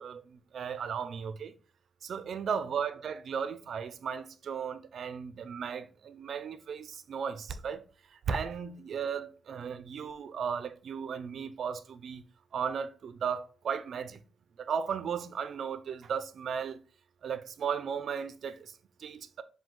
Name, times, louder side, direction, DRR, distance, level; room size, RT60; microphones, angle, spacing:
voice 1, 0.0-1.5 2.0-12.2 12.5-14.2 14.6-16.8 17.2-19.4, right 7 dB, 65° right, 0.4 m, -36 dB
3.7 x 2.6 x 4.3 m
cardioid pair, 110°, 0 cm